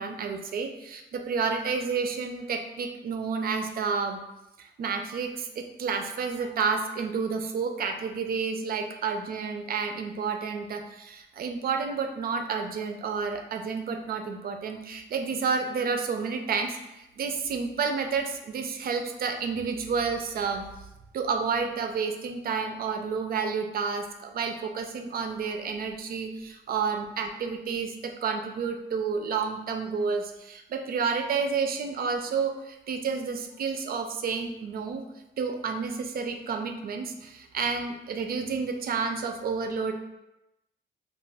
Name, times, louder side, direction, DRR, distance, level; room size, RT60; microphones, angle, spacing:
voice 1, 0.0-4.2 4.8-16.8 17.2-20.6 21.1-35.0 35.4-39.9, right 5 dB, 50° right, 5 dB, 0.4 m, -30 dB
2.3 x 2.2 x 3.3 m, 0.94 s
cardioid pair, 90°, 20 cm